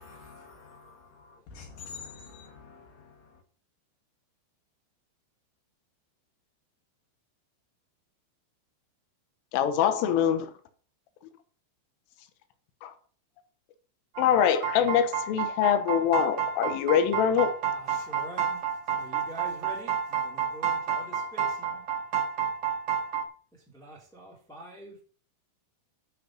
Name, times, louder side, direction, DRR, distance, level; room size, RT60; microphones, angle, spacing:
voice 1, 0.0-3.4, left 5 dB, 60° left, 2.3 m, -47 dB
voice 2, 9.5-10.5 12.8-12.9 14.2-17.5, left 9 dB, 90° left, 3.7 m, -24 dB
sound 1, 14.1-23.2, right 7 dB, 55° right, 2.3 m, -30 dB
voice 3, 17.7-21.9 23.5-25.0, right 1 dB, ahead, 1.6 m, -46 dB
11.5 x 5.7 x 6.1 m
omnidirectional pair, 5.7 m